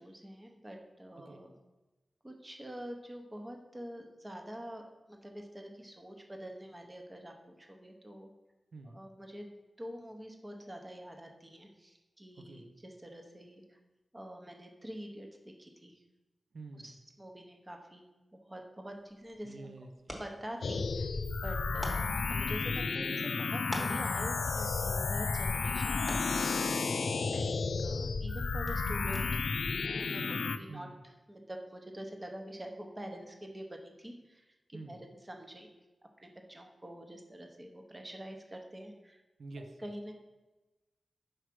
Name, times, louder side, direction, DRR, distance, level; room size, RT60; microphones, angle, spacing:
voice 1, 0.0-1.5 2.2-4.8 5.1-8.3 8.8-13.8 14.1-16.0 16.7-18.1 18.3-19.7 20.2-21.1 21.4-26.4 27.3-27.5 27.8-29.5 29.8-35.0 35.2-35.7 36.2-39.2 39.6-40.1, equal, 20° right, 3 dB, 0.8 m, -46 dB
voice 2, 12.3-12.7 16.5-17.0 19.4-20.2 26.6-27.2 30.7-31.0 34.7-35.0 39.4-39.7, right 3 dB, 85° right, 5 dB, 0.6 m, -48 dB
sound 1, 18.9-29.6, equal, ahead, 1.1 m, -49 dB
sound 2, 20.6-30.6, left 4 dB, 80° left, 0.4 m, -32 dB
4.8 x 4.6 x 6.0 m, 1.1 s
wide cardioid pair, 125°, 0 cm